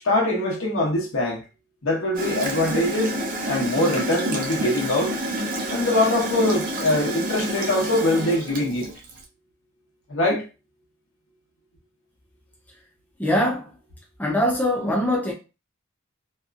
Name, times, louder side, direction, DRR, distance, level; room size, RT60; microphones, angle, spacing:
voice 1, 0.0-1.4 1.8-3.1 3.5-5.1 5.7-8.9 10.1-10.4, left 1 dB, 80° left, 1.0 m, -23 dB
Gurgling / Toilet flush, 2.1-9.2, right 1 dB, 40° right, 0.5 m, -29 dB
voice 2, 13.2-13.7 14.2-15.3, left 1 dB, 10° left, 0.5 m, -22 dB
2.8 x 2.4 x 2.3 m
head